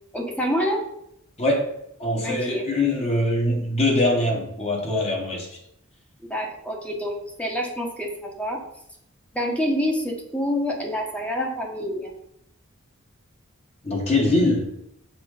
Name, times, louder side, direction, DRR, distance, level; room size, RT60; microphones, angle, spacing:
voice 1, 0.1-0.8 2.2-2.7 6.3-8.6 9.3-12.1, equal, 5° left, 0 dB, 1.3 m, -27 dB
voice 2, 2.0-5.5 13.8-14.7, left 1 dB, 30° left, -1 dB, 1.6 m, -22 dB
6.1 x 5.0 x 5.0 m, 0.75 s
head